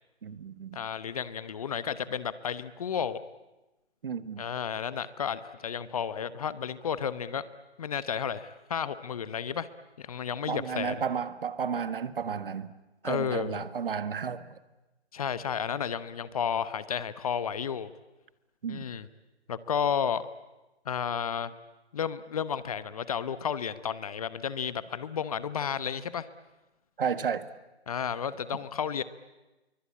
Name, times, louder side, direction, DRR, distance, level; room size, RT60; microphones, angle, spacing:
voice 1, 0.2-0.8 4.0-4.5 10.5-12.7 13.0-14.6 18.6-18.9 27.0-27.5, right 7 dB, 55° right, 1.5 m, -32 dB
voice 2, 0.7-3.2 4.4-7.5 7.8-9.7 10.0-11.0 13.0-13.6 15.1-17.9 18.7-19.1 19.5-20.2 20.9-21.5 21.9-26.3 27.9-29.0, left 7 dB, 35° left, 0.9 m, -32 dB
27.5 x 23.5 x 8.7 m
figure-of-eight pair, 155°, 33 cm